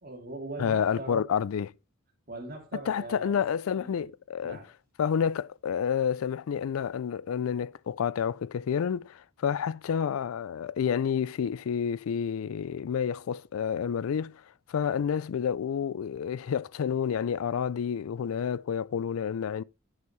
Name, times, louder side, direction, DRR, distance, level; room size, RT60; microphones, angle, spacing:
voice 1, 0.0-1.3 2.3-3.4 3.7-4.1 4.4-4.7, right 2 dB, 45° right, 2.8 m, -40 dB
voice 2, 0.6-1.7 2.9-4.6 5.0-14.4 14.7-19.6, left 7 dB, 85° left, 0.4 m, -29 dB
9.7 x 8.3 x 3.1 m
head